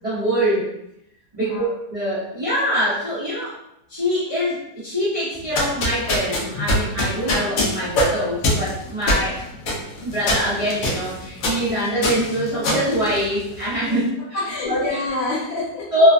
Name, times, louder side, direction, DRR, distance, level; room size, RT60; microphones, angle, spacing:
voice 1, 0.0-0.7 1.3-3.6 3.9-9.4 10.0-14.0 14.3-14.8 15.9-16.1, equal, 30° right, -12 dB, 0.6 m, -23 dB
voice 2, 1.4-1.7 13.9-14.0 14.3-15.9, left 2 dB, 40° left, -7 dB, 1.3 m, -26 dB
sound 1, 5.4-13.8, left 1 dB, 65° left, 0.9 m, -24 dB
3.1 x 2.2 x 2.4 m, 0.80 s
omnidirectional pair, 1.9 m